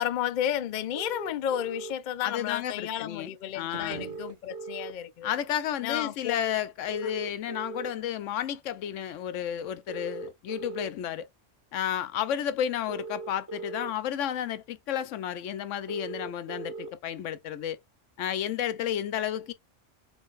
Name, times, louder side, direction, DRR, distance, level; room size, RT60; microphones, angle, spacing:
voice 1, 0.0-5.3 5.8-6.4 7.0-7.1, left 11 dB, 65° left, 0.4 m, -32 dB
sound 1, 0.9-1.9 3.9-4.9 6.9-7.9 9.9-10.9 12.9-13.9 15.9-16.9, right 4 dB, 20° right, 0.6 m, -39 dB
voice 2, 2.2-4.0 5.2-11.3 11.7-17.8 18.2-19.5, left 10 dB, 85° left, 1.0 m, -32 dB
sound 2, 3.5-5.0, right 6 dB, 55° right, 1.2 m, -46 dB
3.8 x 3.3 x 2.4 m
omnidirectional pair, 1.3 m